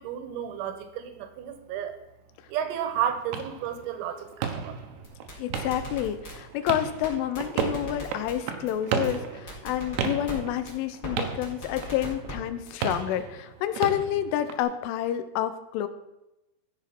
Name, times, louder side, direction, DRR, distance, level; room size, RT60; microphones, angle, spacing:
voice 1, 0.0-2.0 2.5-4.8, right 9 dB, 85° right, 9 dB, 3.9 m, -32 dB
sound 1, 2.9-14.6, right 6 dB, 70° right, 2.6 m, -35 dB
sound 2, 5.0-6.3 6.7-6.8 7.0-7.1 7.3-8.3 8.7-8.8 9.0-9.1 9.5-10.4 10.7-10.8 11.0-11.1 11.4-12.3 12.7-13.0, equal, 20° left, 4.9 m, -39 dB
voice 2, 5.4-15.9, left 11 dB, 80° left, 11 dB, 3.2 m, -29 dB
15.0 x 7.3 x 6.0 m, 0.92 s
omnidirectional pair, 5.9 m